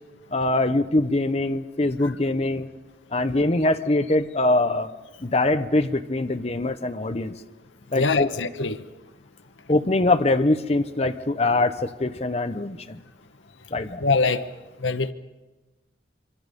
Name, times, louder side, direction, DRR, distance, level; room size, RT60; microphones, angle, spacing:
voice 1, 0.3-2.7 3.1-4.9 5.2-7.3 7.9-8.3 9.7-13.0 13.7-14.0, left 2 dB, 35° left, 8 dB, 0.9 m, -23 dB
voice 2, 7.9-8.8 14.0-14.4 14.8-15.1, left 4 dB, 90° left, 11 dB, 1.0 m, -23 dB
25.5 x 25.0 x 5.3 m, 1.2 s
head